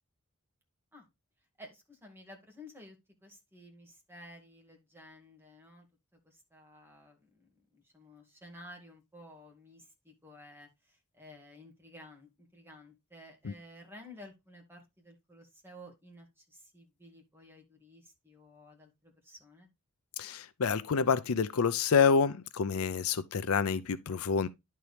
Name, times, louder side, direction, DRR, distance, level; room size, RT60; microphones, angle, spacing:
voice 1, 1.6-5.9 6.2-19.7, left 1 dB, 10° right, 2.2 m, -53 dB
voice 2, 20.2-24.5, left 5 dB, 70° left, 0.5 m, -28 dB
11.0 x 4.6 x 3.3 m
head